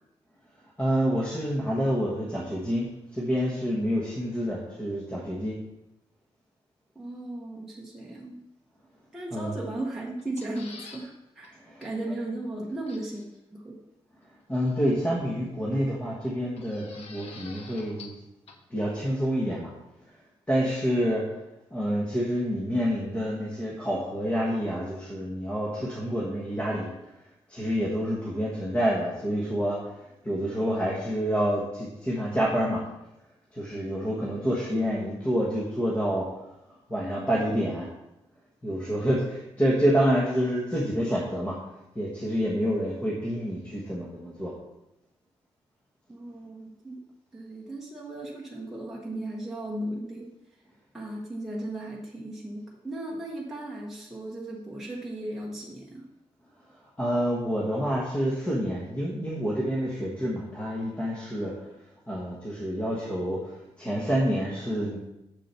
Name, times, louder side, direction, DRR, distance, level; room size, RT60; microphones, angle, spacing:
voice 1, 0.8-5.6 9.3-9.6 11.6-11.9 14.5-18.2 18.7-19.7 20.5-21.3 21.7-26.9 27.5-30.0 30.2-32.8 33.5-36.3 36.9-37.9 38.6-41.6 41.9-44.5 57.0-61.6 62.1-65.0, equal, 10° left, -5 dB, 1.4 m, -28 dB
voice 2, 6.9-8.4 9.1-13.8 46.1-47.0 47.3-50.3 50.9-56.0, right 1 dB, 5° right, -5 dB, 1.1 m, -36 dB
sound 1, 10.2-11.1 11.4-11.5 11.8-11.9 12.9-13.3 14.5-15.1 16.6-18.2 18.5-18.6, left 4 dB, 75° left, 1.2 m, -47 dB
7.4 x 6.7 x 5.7 m, 0.91 s
wide cardioid pair, 180°, 11 cm